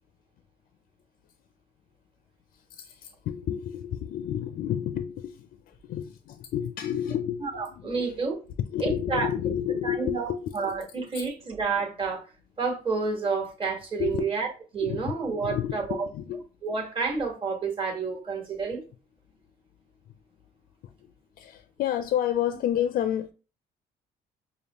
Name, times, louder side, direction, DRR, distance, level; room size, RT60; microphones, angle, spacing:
voice 1, 2.5-8.1 8.6-10.6 11.1-11.3 14.0-14.2 14.8-15.1 15.4-16.4 20.8-23.3, left 10 dB, 60° left, 0.4 m, -30 dB
voice 2, 7.4-8.4 8.8-9.3 9.8-12.2 12.6-14.5 14.7-16.1 16.6-18.8, right 4 dB, 30° right, 1.3 m, -29 dB
5.1 x 2.1 x 2.9 m
cardioid pair, 110°, 17 cm